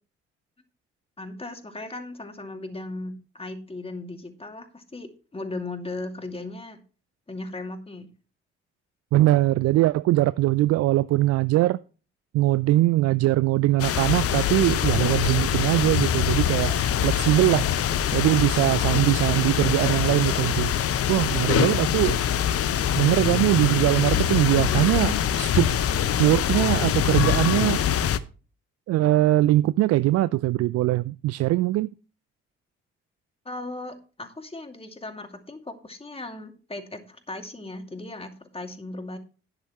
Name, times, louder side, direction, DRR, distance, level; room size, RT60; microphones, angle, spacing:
voice 1, 1.2-6.8 7.3-8.1 33.4-39.2, left 2 dB, 20° left, 5 dB, 2.4 m, -37 dB
voice 2, 9.1-11.8 12.3-16.8 17.0-17.7 18.1-20.7 21.1-22.2 23.0-25.8 26.2-27.8 28.9-31.9, right 16 dB, 50° right, 17 dB, 0.5 m, -21 dB
sound 1, 13.8-28.2, left 9 dB, 45° left, 0.8 m, -24 dB
11.5 x 10.5 x 3.1 m, 0.35 s
figure-of-eight pair, 40°, 32 cm